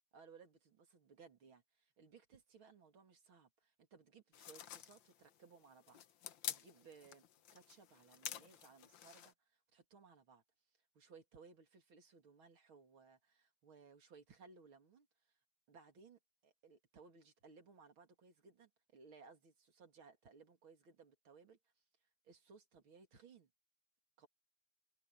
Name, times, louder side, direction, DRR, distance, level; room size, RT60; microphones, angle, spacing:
voice 1, 0.1-6.0 6.5-7.2 7.5-10.4 11.0-15.1 15.7-21.6 22.2-23.5 24.2-24.3, right 5 dB, 70° right, 3.5 m, -62 dB
sound 1, 4.3-9.3, left 10 dB, 65° left, 1.7 m, -49 dB
omnidirectional pair, 2.3 m